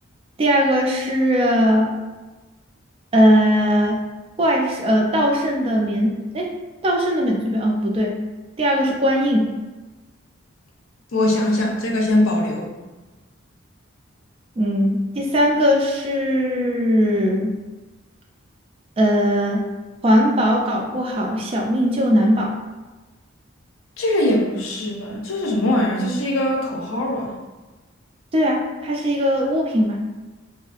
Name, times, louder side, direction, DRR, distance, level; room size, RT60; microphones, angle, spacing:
voice 1, 0.4-2.0 3.1-4.0 4.4-6.5 6.8-8.2 8.6-9.5 14.6-17.5 19.0-19.6 20.0-22.6 28.3-30.0, equal, 30° right, 0 dB, 0.3 m, -19 dB
voice 2, 11.1-12.7 24.0-27.3, left 1 dB, 85° left, 0 dB, 0.5 m, -21 dB
2.6 x 2.3 x 2.4 m, 1.2 s
head